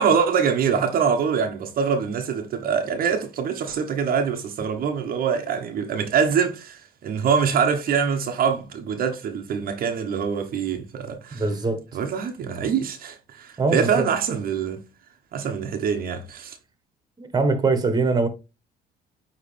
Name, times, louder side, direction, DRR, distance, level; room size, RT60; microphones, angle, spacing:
voice 1, 0.0-11.4 11.9-14.9 15.3-16.6, right 6 dB, 60° right, 1.1 m, -24 dB
voice 2, 11.3-11.8 13.6-14.1 17.2-18.3, right 3 dB, 25° right, 1.4 m, -22 dB
9.5 x 3.2 x 3.3 m
cardioid pair, 110°, 17 cm